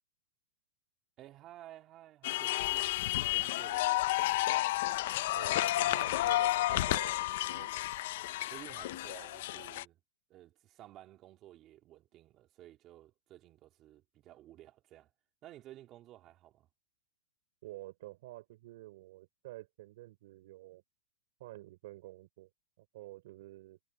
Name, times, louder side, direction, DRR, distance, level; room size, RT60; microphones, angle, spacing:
voice 1, 1.2-4.4 8.5-10.0 10.3-15.1 15.4-16.7, right 14 dB, 25° right, 3.1 m, -54 dB
sound 1, 2.2-9.8, left 16 dB, 55° left, 0.8 m, -31 dB
voice 2, 5.3-7.7 17.6-20.8 21.4-22.5 22.8-23.8, right 17 dB, 55° right, 3.8 m, -49 dB
supercardioid pair, 155°, 0 cm